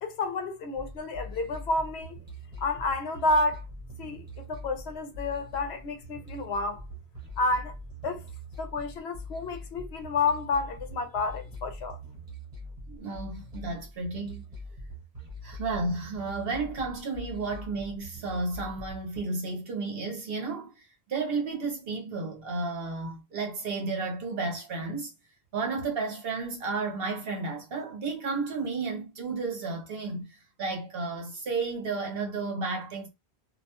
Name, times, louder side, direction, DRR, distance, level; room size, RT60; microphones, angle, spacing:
voice 1, 0.0-2.2 2.6-3.6 4.0-6.8 7.4-7.7 8.0-8.3 8.6-12.0, left 3 dB, 85° left, 0.9 m, -30 dB
sound 1, 0.8-19.2, equal, 40° right, 1.1 m, -43 dB
voice 2, 12.9-14.4 15.4-25.1 25.5-33.1, right 3 dB, 65° right, 0.9 m, -32 dB
2.5 x 2.1 x 2.8 m
omnidirectional pair, 1.1 m